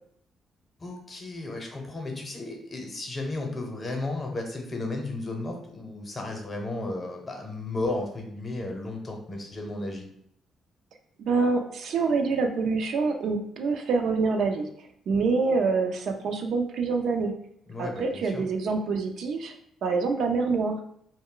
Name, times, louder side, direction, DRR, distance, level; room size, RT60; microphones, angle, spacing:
voice 1, 0.8-10.1 17.7-18.4, left 2 dB, 35° left, 2 dB, 0.7 m, -34 dB
voice 2, 11.2-14.7 15.1-17.3 17.8-19.5 19.8-20.8, right 4 dB, 70° right, 4 dB, 0.4 m, -26 dB
2.3 x 2.1 x 3.8 m, 0.71 s
cardioid pair, 90°, 0 cm